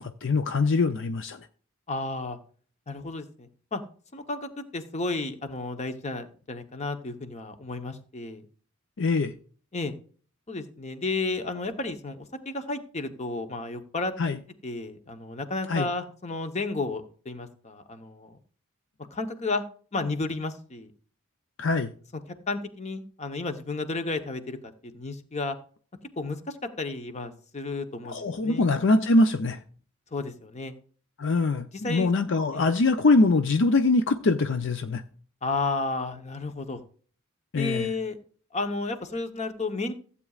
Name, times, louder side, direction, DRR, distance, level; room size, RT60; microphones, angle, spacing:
voice 1, 0.0-1.4 9.0-9.3 14.2-14.4 15.7-15.9 21.6-21.9 28.0-29.6 31.2-35.0 37.5-37.9, left 3 dB, 60° left, 0.6 m, -23 dB
voice 2, 1.9-2.4 2.9-3.8 4.1-8.4 9.7-9.9 10.5-14.1 14.6-18.4 19.1-19.6 19.9-20.9 22.5-25.6 26.2-28.6 30.1-30.7 31.8-32.1 32.5-32.6 35.4-36.8 37.6-38.2 38.5-39.9, left 3 dB, 35° left, 1.0 m, -32 dB
15.0 x 8.4 x 2.4 m
head